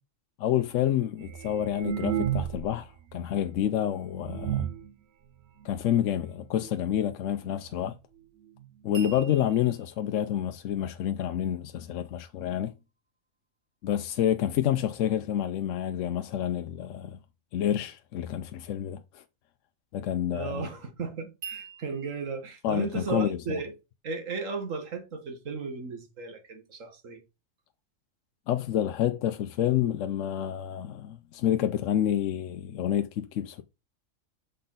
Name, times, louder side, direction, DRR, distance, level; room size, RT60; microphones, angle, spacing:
voice 1, 0.4-4.7 5.6-7.9 8.8-12.7 13.8-17.2 17.5-19.2 19.9-20.7 22.6-23.6 28.5-33.6, left 10 dB, 75° left, 0.9 m, -28 dB
sound 1, 1.2-2.8 3.1-3.2 3.8-3.9 4.2-4.9 5.6-5.7 6.0-6.1 6.4-6.7 7.5-7.6 7.9-8.0 8.6-8.7 9.0-9.1, right 10 dB, 65° right, 0.9 m, -31 dB
sound 2, 8.9-12.0 21.4-22.2, right 7 dB, 40° right, 1.3 m, -46 dB
voice 2, 20.3-23.7 24.0-27.2, right 4 dB, 80° right, 1.8 m, -35 dB
6.5 x 4.1 x 3.9 m
omnidirectional pair, 1.3 m